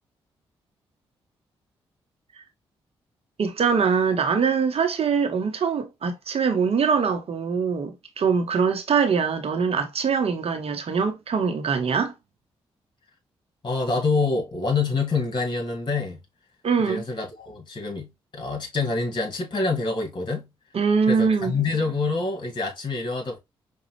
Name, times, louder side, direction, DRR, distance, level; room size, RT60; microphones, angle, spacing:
voice 1, 3.4-12.1 16.6-17.1 20.7-21.6, right 5 dB, 55° right, 1.0 m, -23 dB
voice 2, 13.6-16.2 16.9-20.5 21.1-23.4, left 3 dB, 40° left, 1.9 m, -26 dB
5.1 x 2.3 x 3.0 m
hypercardioid pair, 40°, 12 cm